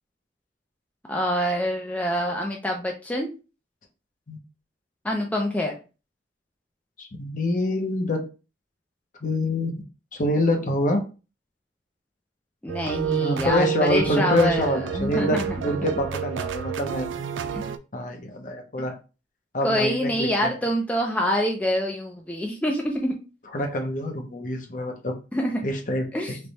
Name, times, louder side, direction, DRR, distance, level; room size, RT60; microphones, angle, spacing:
voice 1, 1.1-3.3 5.0-5.7 12.6-15.4 17.5-17.7 19.6-23.2 25.3-25.6 26.1-26.4, equal, 10° left, 0 dB, 0.4 m, -26 dB
voice 2, 7.0-8.2 9.2-9.7 10.1-11.0 13.2-17.1 17.9-18.9 19.5-20.5 23.5-25.1 25.6-26.1, left 1 dB, 45° left, 4 dB, 0.7 m, -26 dB
sound 1, 12.7-17.8, right 8 dB, 80° right, 0.3 m, -29 dB
3.3 x 2.2 x 3.9 m, 0.32 s
head